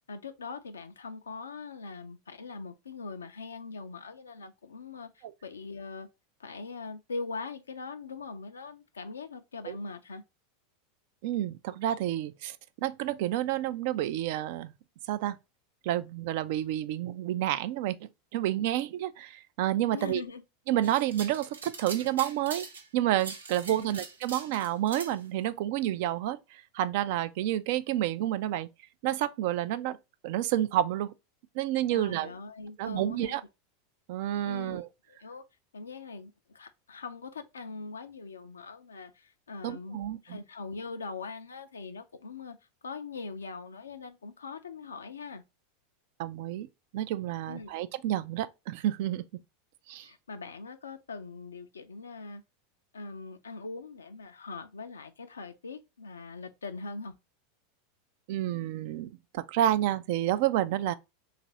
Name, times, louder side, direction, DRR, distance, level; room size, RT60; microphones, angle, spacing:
voice 1, 0.1-6.1 6.4-10.2 19.9-20.4 23.7-24.0 31.9-33.5 34.4-34.8 35.1-35.4 35.7-42.6 42.8-45.4 47.5-47.7 50.0-52.4 52.9-57.1, left 4 dB, 85° left, 0.4 m, -42 dB
voice 2, 11.2-12.6 12.8-14.7 15.1-15.4 15.8-20.2 20.7-22.7 22.9-28.7 29.0-30.0 30.2-31.1 31.5-32.3 32.8-33.4 34.1-34.9 39.6-40.4 46.2-46.7 46.9-49.2 49.9-50.1 58.3-60.9, right 13 dB, 60° right, 0.3 m, -29 dB
sound 1, 20.8-22.9 23.2-25.1, right 4 dB, 85° right, 0.7 m, -42 dB
3.2 x 2.4 x 4.0 m
hypercardioid pair, 90°, 0 cm